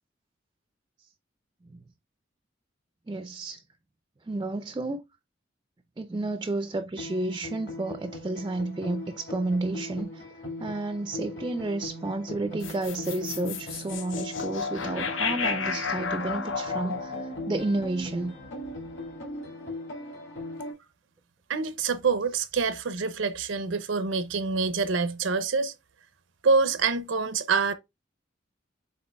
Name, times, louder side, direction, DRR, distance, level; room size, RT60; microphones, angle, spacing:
voice 1, 3.1-3.6 4.3-5.0 6.0-10.2 10.6-18.4, right 2 dB, 20° right, 0.3 m, -31 dB
sound 1, 7.0-20.7, left 1 dB, 65° left, 1.9 m, -40 dB
sound 2, 12.6-18.9, left 5 dB, 85° left, 0.6 m, -33 dB
voice 2, 21.5-25.7 26.4-27.7, right 4 dB, 90° right, 0.6 m, -26 dB
7.9 x 2.8 x 2.2 m
head